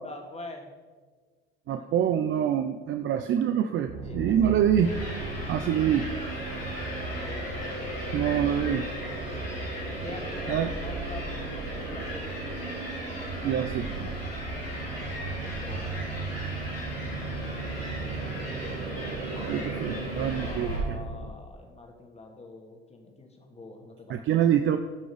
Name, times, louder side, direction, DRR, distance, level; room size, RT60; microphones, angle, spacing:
voice 1, 0.0-0.7 1.7-2.1 4.0-4.6 7.0-8.5 10.0-12.6 15.3-16.4 20.3-24.5, left 2 dB, 20° left, 3 dB, 2.0 m, -45 dB
voice 2, 1.7-4.9 5.5-6.1 8.1-8.8 10.5-10.7 13.4-14.1 19.4-21.0 24.1-24.8, right 9 dB, 40° right, 7 dB, 0.6 m, -25 dB
sound 1, 3.9-21.3, right 3 dB, 65° right, 1.6 m, -36 dB
sound 2, 4.8-20.8, left 1 dB, 80° left, 3.5 m, -39 dB
16.5 x 6.2 x 5.1 m, 1.4 s
figure-of-eight pair, 60°, 30 cm